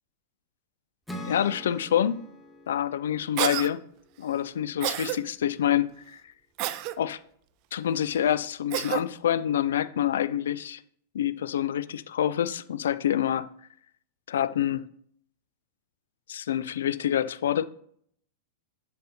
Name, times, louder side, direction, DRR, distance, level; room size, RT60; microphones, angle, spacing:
Acoustic guitar / Strum, 1.1-4.5, equal, ahead, 1.6 m, -44 dB
voice 1, 1.2-2.2 2.7-3.8 4.2-6.2 7.0-7.2 7.7-10.8 11.1-13.5 14.3-14.8 16.3-17.6, left 10 dB, 65° left, 0.3 m, -27 dB
Cough, 3.4-3.7 4.8-5.2 6.6-7.0 8.7-9.0, right 14 dB, 45° right, 0.4 m, -29 dB
7.3 x 6.9 x 2.7 m
figure-of-eight pair, 90°, 0 cm